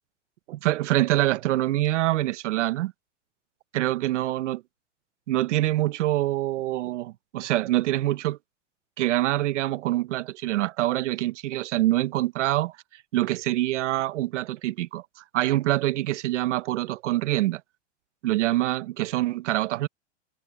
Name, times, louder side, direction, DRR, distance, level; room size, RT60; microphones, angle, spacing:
voice 1, 0.5-2.9 3.7-4.6 5.3-8.4 9.0-12.7 13.1-15.0 15.3-17.6 18.2-19.9, right 15 dB, 80° right, 1.0 m, -25 dB
supercardioid pair, 155°, 36 cm